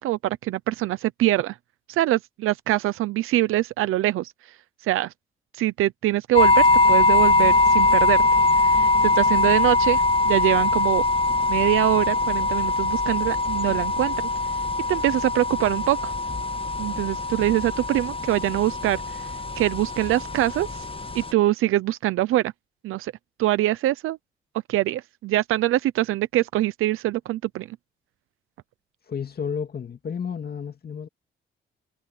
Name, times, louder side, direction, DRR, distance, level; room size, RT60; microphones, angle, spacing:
voice 1, 0.0-1.5 1.9-4.3 4.8-5.1 5.6-8.2 8.7-11.0 11.5-14.1 14.9-16.1 16.8-19.3 19.6-20.7 21.1-22.5 22.8-23.1 23.4-24.2 24.7-27.8, right 15 dB, 85° right, 0.8 m, -23 dB
sound 1, 6.4-21.3, left 2 dB, 25° left, 1.5 m, -22 dB
voice 2, 29.1-31.1, left 7 dB, 50° left, 2.2 m, -31 dB
cardioid pair, 75°, 21 cm